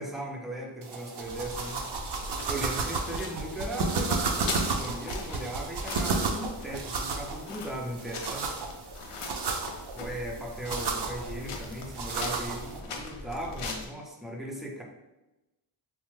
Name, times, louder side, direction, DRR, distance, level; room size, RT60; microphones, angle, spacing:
voice 1, 0.0-1.8 2.5-8.5 9.9-14.8, right 1 dB, ahead, -2 dB, 0.5 m, -37 dB
sound 1, 0.8-12.8, right 4 dB, 55° right, 0.5 m, -33 dB
sound 2, 1.2-13.9, left 3 dB, 85° left, 0.6 m, -41 dB
3.3 x 2.0 x 3.1 m, 0.99 s
wide cardioid pair, 70°, 50 cm